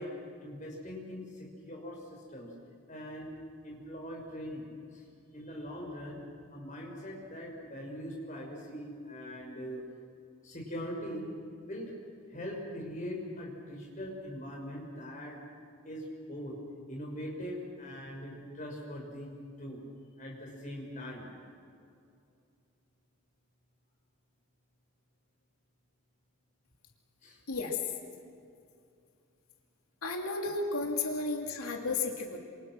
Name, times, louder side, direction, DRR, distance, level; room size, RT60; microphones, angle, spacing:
voice 1, 0.0-2.5 2.9-3.4 3.6-4.6 4.9-5.0 5.3-6.2 6.5-9.8 10.4-11.3 11.6-11.9 12.3-15.4 15.8-16.6 16.9-19.3 19.6-19.8 20.2-21.3 27.2-27.4, equal, 35° left, -1 dB, 6.1 m, -41 dB
voice 2, 27.5-27.8 30.0-32.4, left 3 dB, 90° left, 2 dB, 2.8 m, -33 dB
28.0 x 27.0 x 6.2 m, 2.4 s
head